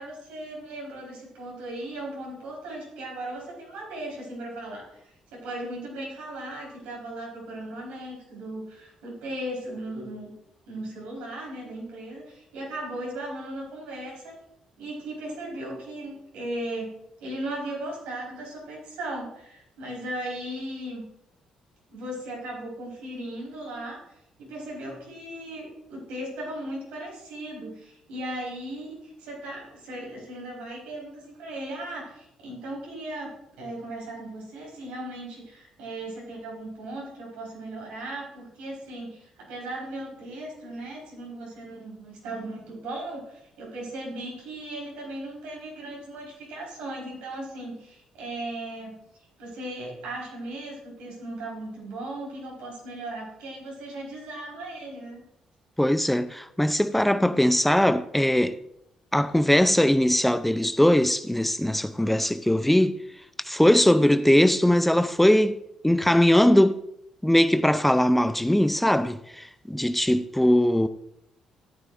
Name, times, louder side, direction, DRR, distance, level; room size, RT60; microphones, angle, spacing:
voice 1, 0.0-10.3 10.7-14.3 14.8-16.9 17.2-21.1 21.9-24.0 24.4-33.3 33.6-48.9 49.4-55.2, right 1 dB, 80° right, 4.4 m, -37 dB
voice 2, 55.8-58.6 59.1-62.9 63.5-65.5 65.8-66.8 67.2-70.9, left 1 dB, 5° left, 0.5 m, -20 dB
13.5 x 9.0 x 2.6 m
hypercardioid pair, 55°, 2 cm